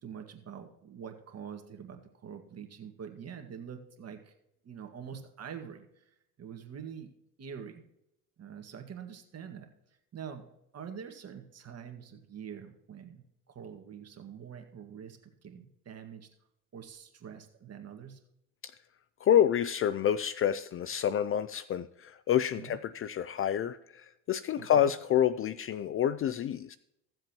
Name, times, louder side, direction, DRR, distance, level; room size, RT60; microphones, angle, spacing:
voice 1, 0.0-4.3 4.6-6.1 6.4-7.1 7.4-7.8 8.4-9.7 10.1-10.5 10.7-16.3 16.7-18.2 22.6-22.8 24.6-24.9, right 7 dB, 40° right, 5 dB, 1.8 m, -45 dB
voice 2, 19.2-26.8, left 9 dB, 35° left, 16 dB, 0.4 m, -28 dB
15.5 x 7.6 x 3.0 m, 0.81 s
supercardioid pair, 85°, 39 cm